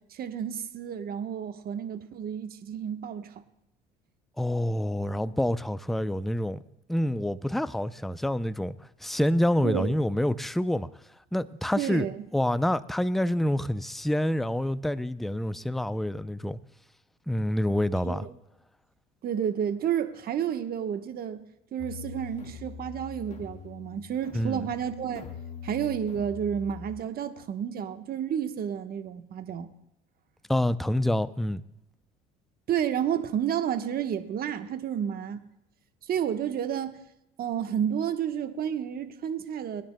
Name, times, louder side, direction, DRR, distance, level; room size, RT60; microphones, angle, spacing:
voice 1, 0.1-3.3 9.6-9.9 11.8-12.1 18.1-18.3 19.2-21.4 21.7-25.2 25.6-29.7 32.7-35.4 36.0-37.0 37.4-39.8, right 9 dB, 50° right, 1.2 m, -31 dB
voice 2, 4.4-6.6 6.9-10.9 11.3-12.1 12.3-16.6 17.3-18.3 24.3-24.7 30.5-31.6, left 1 dB, ahead, 0.5 m, -27 dB
sound 1, 21.8-27.0, left 7 dB, 35° left, 1.7 m, -43 dB
25.5 x 10.5 x 2.2 m
supercardioid pair, 85°, 21 cm